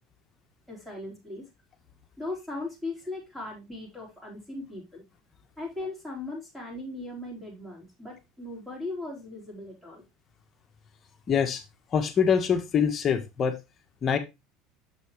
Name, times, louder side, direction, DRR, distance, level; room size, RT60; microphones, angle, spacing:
voice 1, 0.7-1.5 2.2-5.0 5.6-10.0, left 2 dB, 5° right, -3 dB, 4.2 m, -38 dB
voice 2, 11.3-11.6 11.9-13.5 14.0-14.2, left 7 dB, 35° left, 7 dB, 1.2 m, -24 dB
7.1 x 6.2 x 3.1 m, 0.23 s
supercardioid pair, 120°, 0 cm